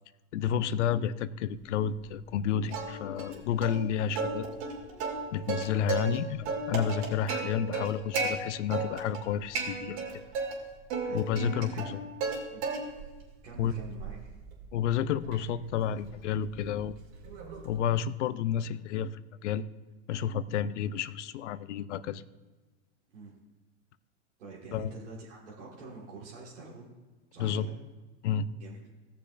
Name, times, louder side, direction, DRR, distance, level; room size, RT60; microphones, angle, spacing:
voice 1, 0.3-4.5 5.3-10.0 11.1-12.0 13.6-13.7 14.7-17.0 17.6-19.7 20.1-22.2 24.7-25.0 27.4-27.7 28.2-28.5, left 8 dB, 85° left, 15 dB, 0.6 m, -30 dB
Plucked string instrument, 2.7-3.3 3.6-3.8 4.2-6.2 6.5-8.3 8.7-9.2 9.5-10.5 10.9-12.4 12.6-13.1 13.5-17.8, right 4 dB, 65° right, 2.6 m, -34 dB
voice 2, 11.0-12.0 12.5-12.6 13.4-14.2 23.1-23.3 24.4-26.9 27.3-27.7 28.6-28.9, right 3 dB, 90° right, -5 dB, 1.9 m, -46 dB
17.0 x 6.9 x 2.5 m, 1.3 s
hypercardioid pair, 105°, 35 cm